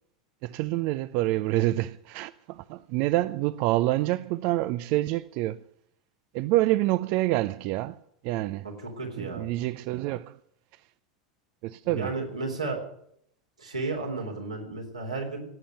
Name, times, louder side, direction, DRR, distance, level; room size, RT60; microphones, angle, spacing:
voice 1, 0.4-5.6 6.3-8.0 8.2-8.7 9.2-10.4 11.6-12.1, right 17 dB, 50° right, 0.5 m, -27 dB
voice 2, 8.6-9.5 11.9-12.8 13.6-15.4, right 3 dB, 85° right, 3.7 m, -33 dB
16.5 x 8.6 x 9.0 m
figure-of-eight pair, 85°, 3 cm